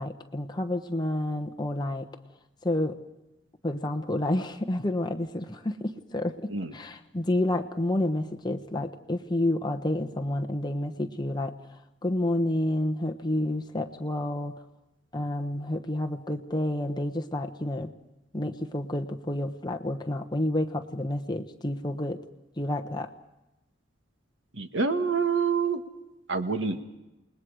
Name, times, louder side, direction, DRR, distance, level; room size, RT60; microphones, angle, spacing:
voice 1, 0.0-2.1 2.6-3.0 3.6-14.6 15.1-17.9 18.3-22.2 22.6-23.1, left 1 dB, 20° left, 4 dB, 1.1 m, -29 dB
voice 2, 24.5-25.8 26.3-26.8, right 5 dB, 70° right, 7 dB, 1.6 m, -26 dB
29.0 x 20.0 x 4.9 m, 0.96 s
head